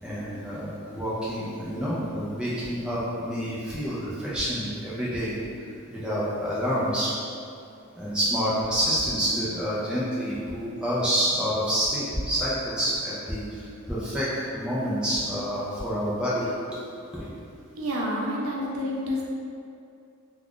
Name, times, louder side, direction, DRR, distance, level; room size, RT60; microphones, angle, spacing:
voice 1, 0.0-5.3 5.9-7.1 8.0-16.5 17.1-17.2, equal, 5° right, -9 dB, 0.5 m, -28 dB
voice 2, 17.8-19.3, equal, 75° right, -3 dB, 0.5 m, -29 dB
2.4 x 2.3 x 3.5 m, 2.5 s
head